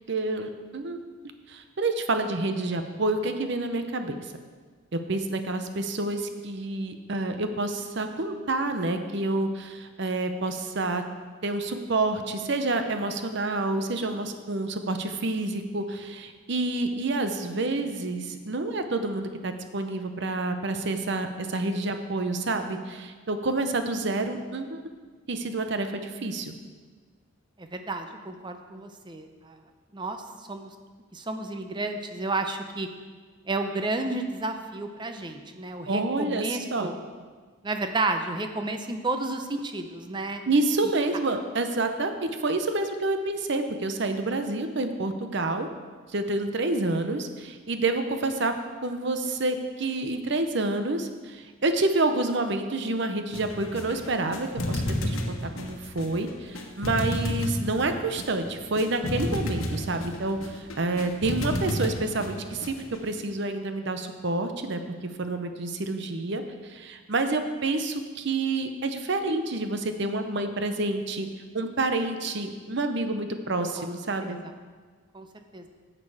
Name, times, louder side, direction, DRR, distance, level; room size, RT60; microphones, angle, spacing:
voice 1, 0.1-1.0 1.5-4.3 4.9-11.0 11.4-24.8 25.3-26.5 35.9-36.9 40.5-45.7 46.1-48.6 48.8-64.8 65.2-71.3 71.5-74.4, right 2 dB, 55° right, 7 dB, 0.7 m, -28 dB
voice 2, 27.6-29.6 29.9-30.7 31.1-32.9 33.5-36.9 37.6-40.4 73.8-73.9 74.2-74.5 75.1-75.3 75.5-75.6, right 2 dB, 20° right, 6 dB, 0.7 m, -31 dB
sound 1, 53.3-63.1, left 1 dB, 80° left, 1.2 m, -32 dB
11.0 x 7.6 x 4.8 m, 1.5 s
head